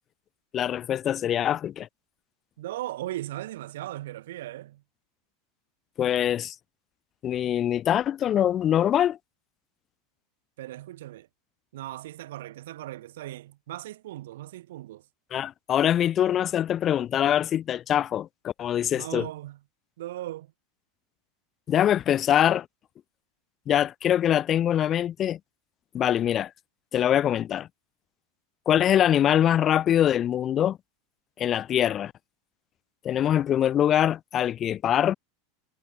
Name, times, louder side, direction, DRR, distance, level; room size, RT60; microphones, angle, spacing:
voice 1, 0.5-1.9 6.0-6.5 7.2-9.2 15.3-19.3 21.7-22.7 23.7-25.4 25.9-26.5 26.9-27.7 28.7-30.8 31.4-32.1 33.0-35.1, left 10 dB, 35° left, 0.4 m, -23 dB
voice 2, 2.6-4.8 10.6-11.3 11.7-15.0 18.9-19.6 20.0-20.5, right 15 dB, 70° right, 1.5 m, -38 dB
hypercardioid pair, 90°, 0 cm